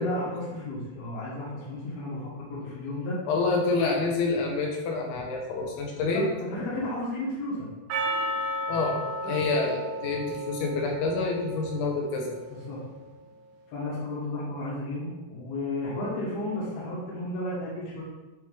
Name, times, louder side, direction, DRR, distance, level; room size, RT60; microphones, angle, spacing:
voice 1, 0.0-3.2 6.0-7.7 9.2-9.4 12.5-12.8 13.7-18.0, left 1 dB, 60° left, -6 dB, 3.5 m, -33 dB
voice 2, 3.3-6.3 8.7-12.4, left 3 dB, 85° left, 0 dB, 3.4 m, -27 dB
Percussion, 7.9-12.4, right 1 dB, 85° right, 1.9 m, -33 dB
9.6 x 3.4 x 3.4 m, 1.1 s
omnidirectional pair, 5.2 m